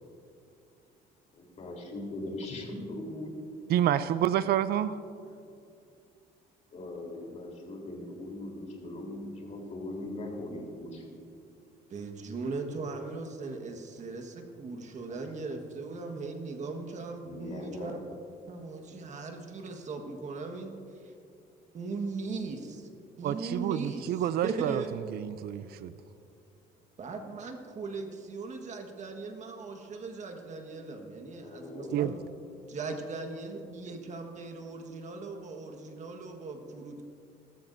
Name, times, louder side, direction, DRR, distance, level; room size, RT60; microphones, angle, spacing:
voice 1, 1.3-3.3 6.7-11.1 17.2-18.0 31.4-32.0, left 1 dB, 45° left, 0 dB, 3.7 m, -40 dB
voice 2, 3.7-5.0 23.2-25.9 31.9-32.1, right 11 dB, 65° right, 14 dB, 0.5 m, -29 dB
voice 3, 11.9-18.0 18.5-20.7 21.7-22.9 23.2-24.1 24.4-24.9 27.0-32.1 32.7-37.0, right 3 dB, 45° right, 4 dB, 1.5 m, -38 dB
20.0 x 13.5 x 2.7 m, 2.5 s
cardioid pair, 110°, 17 cm